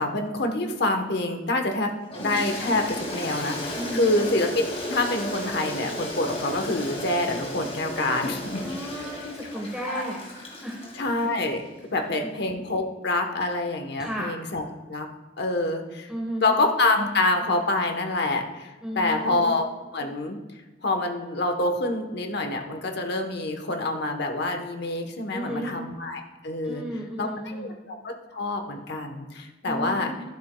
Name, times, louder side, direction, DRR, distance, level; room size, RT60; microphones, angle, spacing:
voice 1, 0.0-1.9 2.2-4.5 4.8-8.6 9.0-9.1 9.5-10.0 10.9-11.6 11.9-14.6 14.9-15.1 15.4-16.1 16.4-19.7 19.9-20.4 20.8-26.8 27.2-30.1, left 2 dB, 60° left, 4 dB, 1.0 m, -26 dB
Toilet flush, 2.1-11.5, left 1 dB, 35° left, 2.2 m, -34 dB
voice 2, 3.7-4.1 8.6-10.2 10.6-10.9 11.9-12.4 14.0-14.3 16.1-16.6 18.8-19.5 25.3-25.8 26.6-27.7 29.6-30.2, equal, 5° right, -1 dB, 1.1 m, -34 dB
12.0 x 11.0 x 2.3 m, 1.1 s
head